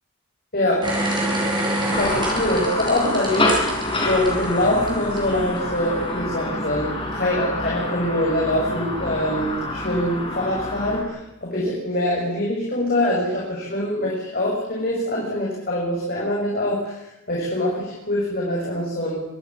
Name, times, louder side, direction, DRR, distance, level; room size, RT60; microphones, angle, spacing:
sound 1, 0.8-5.2 5.6-5.7, right 1 dB, 20° right, 7.4 m, -26 dB
sound 2, 1.9-11.0, left 1 dB, 25° left, 5.5 m, -27 dB
voice 1, 2.0-17.0 17.3-19.2, left 1 dB, 45° left, -4 dB, 6.9 m, -24 dB
25.5 x 14.0 x 9.8 m, 0.92 s
head